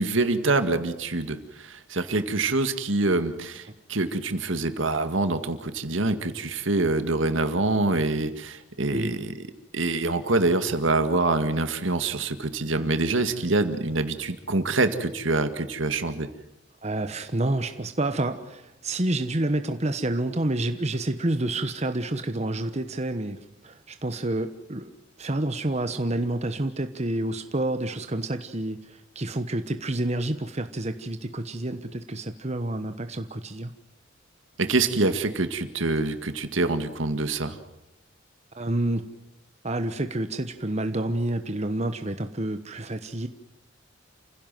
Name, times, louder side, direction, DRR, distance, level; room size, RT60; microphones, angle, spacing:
voice 1, 0.0-9.3 9.7-16.3 34.6-37.6, right 2 dB, 75° right, 9 dB, 2.0 m, -25 dB
voice 2, 16.8-24.9 25.2-33.7 38.6-39.0 39.6-43.3, right 1 dB, 35° right, 8 dB, 1.1 m, -29 dB
29.5 x 16.5 x 7.7 m, 0.88 s
head